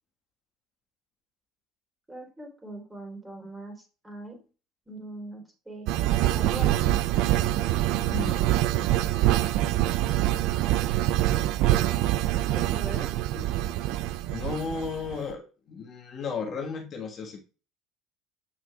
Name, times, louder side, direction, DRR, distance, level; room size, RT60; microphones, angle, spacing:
voice 1, 2.1-4.4 4.9-5.9 6.3-6.8 12.5-13.1, right 2 dB, 15° right, 2 dB, 3.2 m, -40 dB
sound 1, 5.9-15.2, right 14 dB, 70° right, 0.4 m, -25 dB
voice 2, 8.1-8.5 13.3-13.6 14.3-17.4, left 5 dB, 45° left, 2 dB, 1.4 m, -34 dB
8.4 x 6.1 x 2.3 m, 0.34 s
supercardioid pair, 90°, 0 cm